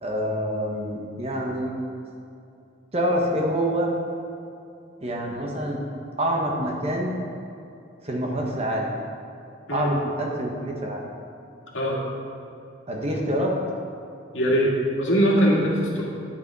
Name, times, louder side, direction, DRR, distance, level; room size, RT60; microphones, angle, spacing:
voice 1, 0.0-1.7 2.9-3.9 5.0-5.8 6.2-7.2 8.0-8.9 9.7-11.0 12.9-13.5, equal, 30° right, 0 dB, 1.2 m, -26 dB
voice 2, 14.3-16.0, equal, 80° left, -3 dB, 2.0 m, -21 dB
9.7 x 6.9 x 4.7 m, 2.6 s
head